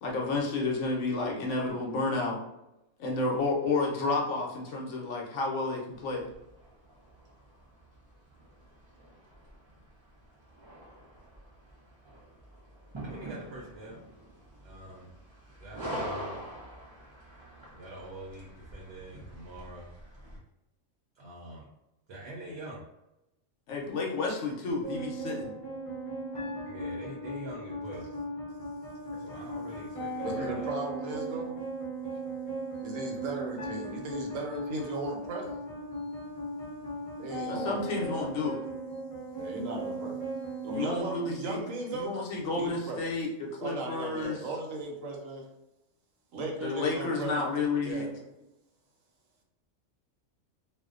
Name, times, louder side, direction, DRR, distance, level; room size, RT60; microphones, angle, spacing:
voice 1, 0.0-2.4 3.0-6.3 23.7-25.5 37.5-38.6 40.7-41.6 41.9-44.5 46.6-48.1, left 3 dB, 70° left, -1 dB, 0.9 m, -31 dB
sound 1, 5.9-20.4, right 1 dB, 45° right, 0.3 m, -45 dB
voice 2, 13.1-14.0 14.6-15.1 15.6-16.4 17.6-19.9 21.1-21.7 22.1-22.8 26.6-28.1 29.2-30.7, right 1 dB, 60° right, -3 dB, 0.8 m, -44 dB
sound 2, 24.8-41.8, right 1 dB, 5° left, 0.7 m, -38 dB
voice 3, 30.2-31.6 32.8-35.5 37.2-38.1 39.4-40.2 40.6-42.1 42.6-43.0 43.6-45.4 46.3-47.4 47.8-48.2, right 2 dB, 85° right, 0 dB, 1.0 m, -36 dB
2.5 x 2.1 x 2.4 m, 0.90 s
omnidirectional pair, 1.3 m